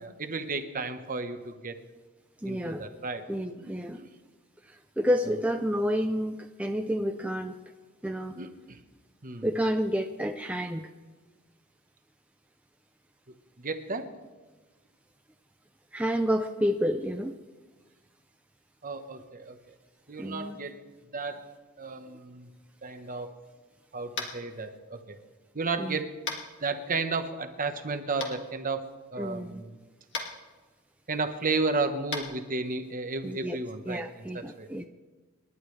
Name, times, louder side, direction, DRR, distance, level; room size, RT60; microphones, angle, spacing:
voice 1, 0.0-1.8 2.5-3.3 3.6-4.1 5.3-5.4 8.3-8.8 9.2-9.5 13.6-14.1 18.8-19.6 20.1-20.7 21.1-21.5 21.8-22.5 22.8-23.3 23.9-25.2 25.5-26.2 26.6-29.8 31.1-34.3 34.6-34.7, right 3 dB, 40° right, 7 dB, 1.1 m, -33 dB
voice 2, 2.4-2.9 3.3-4.0 4.7-7.6 8.0-8.4 9.4-10.9 15.9-17.3 20.2-20.6 25.8-26.0 29.2-29.6 33.2-33.6 33.9-34.9, equal, 5° right, 4 dB, 0.5 m, -29 dB
Tap, 24.1-24.4 26.2-26.4 28.2-28.3 30.1-30.3 32.1-32.2, left 4 dB, 60° left, 2.3 m, -33 dB
28.5 x 11.5 x 3.3 m, 1.3 s
head